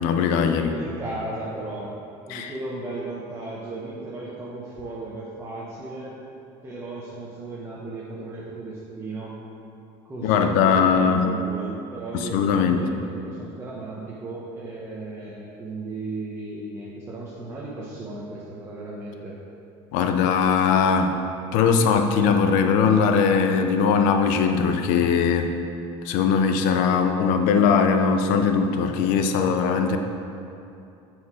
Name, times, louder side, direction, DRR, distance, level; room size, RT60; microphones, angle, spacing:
voice 1, 0.0-0.7 2.3-2.5 10.2-11.3 12.1-12.8 19.9-21.2 21.5-25.5 26.0-30.0, left 6 dB, 70° left, 6 dB, 0.7 m, -20 dB
voice 2, 0.6-1.9 2.3-6.1 6.6-9.4 10.0-19.4, right 2 dB, 20° right, -7 dB, 1.1 m, -35 dB
8.0 x 4.9 x 5.0 m, 2.7 s
cardioid pair, 125°, 14 cm